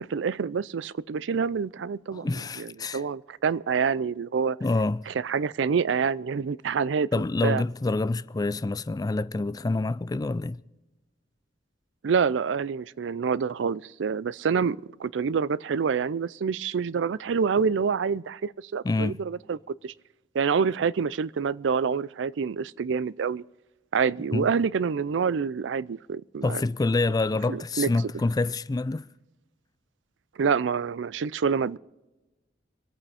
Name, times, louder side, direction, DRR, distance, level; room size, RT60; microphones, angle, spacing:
voice 1, 0.0-2.3 2.6-4.6 5.1-7.1 7.4-7.6 12.0-19.6 19.8-19.9 20.3-23.4 23.9-26.6 27.5-27.9 30.4-31.8, right 6 dB, 90° right, 0.4 m, -27 dB
voice 2, 2.1-3.0 4.6-5.1 7.1-10.6 18.8-19.2 24.3-24.5 26.4-29.1, left 2 dB, 20° left, 0.3 m, -27 dB
25.0 x 8.8 x 4.2 m
head